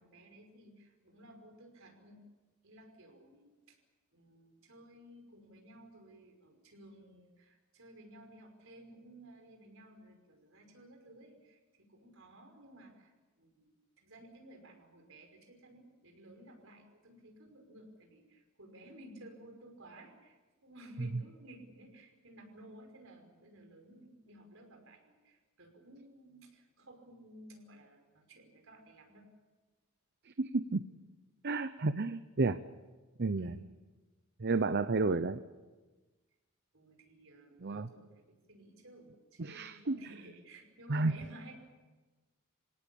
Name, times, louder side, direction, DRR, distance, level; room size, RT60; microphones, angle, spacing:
voice 1, 0.0-2.2 2.6-3.8 4.1-13.1 13.4-29.3 33.4-33.6 36.7-38.2 38.5-41.5, right 1 dB, 70° right, 3 dB, 5.6 m, -55 dB
voice 2, 30.4-30.8 31.4-32.6 33.2-33.5 34.4-35.4 37.6-37.9 39.4-40.0 40.9-41.1, right 3 dB, 55° right, 12 dB, 0.8 m, -31 dB
27.5 x 17.5 x 8.7 m, 1.3 s
head